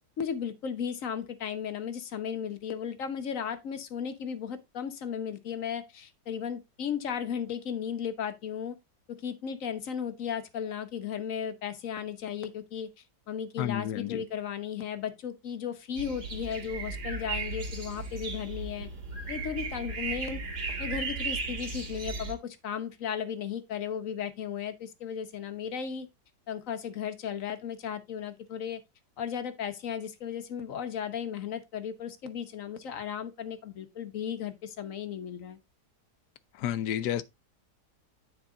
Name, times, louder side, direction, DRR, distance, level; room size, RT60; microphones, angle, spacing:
voice 1, 0.2-8.8 9.1-12.9 13.3-18.9 19.3-20.4 20.8-26.1 26.5-28.8 29.2-35.6, left 8 dB, 55° left, 1.3 m, -35 dB
voice 2, 13.6-14.2 36.6-37.2, left 11 dB, 80° left, 1.2 m, -30 dB
sound 1, 16.0-22.3, right 3 dB, 75° right, 2.8 m, -36 dB
9.5 x 4.7 x 3.8 m
omnidirectional pair, 1.8 m